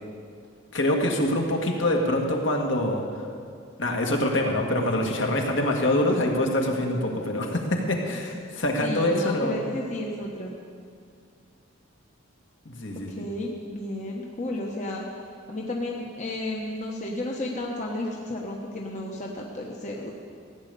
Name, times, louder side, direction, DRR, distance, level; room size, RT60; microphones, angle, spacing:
voice 1, 0.7-3.0 3.8-9.6 12.7-13.3, left 1 dB, 65° left, 1 dB, 1.9 m, -25 dB
voice 2, 8.8-10.5 13.1-15.0 15.5-20.1, left 1 dB, 35° left, -2 dB, 1.1 m, -32 dB
16.0 x 9.7 x 6.9 m, 2.3 s
head